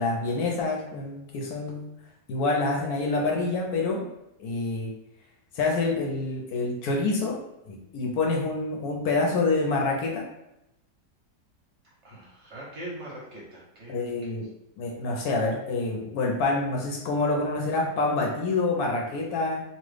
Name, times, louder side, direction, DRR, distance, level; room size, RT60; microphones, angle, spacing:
voice 1, 0.0-1.9 2.3-4.1 4.4-4.9 5.5-7.4 7.7-10.3 13.9-14.5 14.8-19.6, left 3 dB, 70° left, 0 dB, 1.1 m, -27 dB
voice 2, 12.0-14.0 14.3-14.4, right 1 dB, 55° right, -5 dB, 0.9 m, -41 dB
3.0 x 2.3 x 3.2 m, 0.89 s
omnidirectional pair, 1.8 m